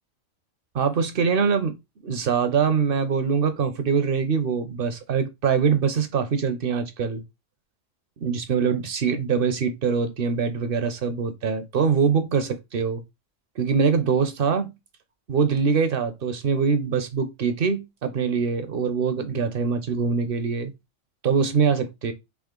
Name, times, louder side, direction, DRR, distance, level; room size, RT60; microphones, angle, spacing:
voice 1, 0.7-1.8 2.0-7.2 8.2-13.0 13.6-14.7 15.3-20.7 21.2-22.1, right 6 dB, 55° right, 0.7 m, -23 dB
3.6 x 3.0 x 3.7 m
omnidirectional pair, 1.3 m